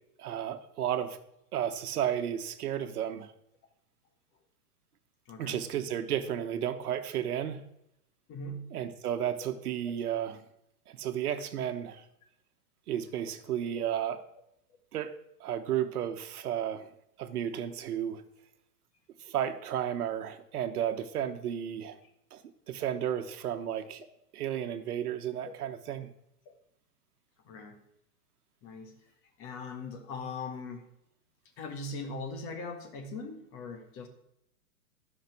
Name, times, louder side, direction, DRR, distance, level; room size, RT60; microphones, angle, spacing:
voice 1, 0.2-1.2 1.5-3.3 5.4-7.7 8.7-10.4 10.9-12.0 12.9-14.2 14.9-15.1 15.4-16.9 17.2-18.2 19.2-22.0 22.3-22.4 22.7-24.0 24.3-26.1, right 10 dB, 70° right, 9 dB, 1.3 m, -33 dB
voice 2, 5.3-5.6 8.3-8.8 13.7-13.8 15.5-15.6 25.5-25.6 27.4-27.8 28.6-28.9 29.4-30.9 31.6-34.1, left 3 dB, 30° left, 5 dB, 1.7 m, -40 dB
11.5 x 5.9 x 5.9 m, 0.78 s
hypercardioid pair, 145°, 47 cm